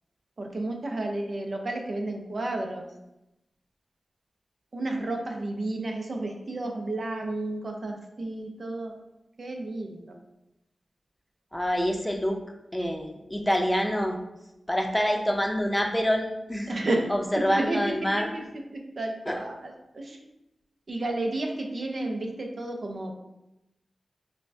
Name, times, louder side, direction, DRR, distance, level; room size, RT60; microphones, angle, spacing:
voice 1, 0.4-2.9 4.7-8.9 9.4-10.2 16.7-18.4 19.0-20.2 20.9-23.1, right 2 dB, 65° right, 2 dB, 0.6 m, -32 dB
voice 2, 11.5-12.4 12.7-14.2 14.7-16.8 17.1-18.3 19.3-19.4, equal, 10° left, 3 dB, 0.6 m, -26 dB
5.4 x 2.2 x 2.7 m, 0.91 s
cardioid pair, 50°, 0 cm